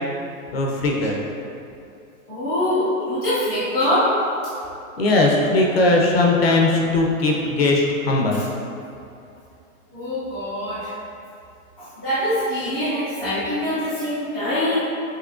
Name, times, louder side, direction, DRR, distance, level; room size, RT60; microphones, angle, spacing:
voice 1, 0.5-1.2 5.0-8.4, left 2 dB, 45° left, -1 dB, 0.5 m, -19 dB
voice 2, 2.3-4.1 9.9-10.9 12.0-14.8, left 1 dB, 10° right, -19 dB, 0.4 m, -23 dB
6.1 x 3.1 x 2.4 m, 2.7 s
hypercardioid pair, 170°, 43 cm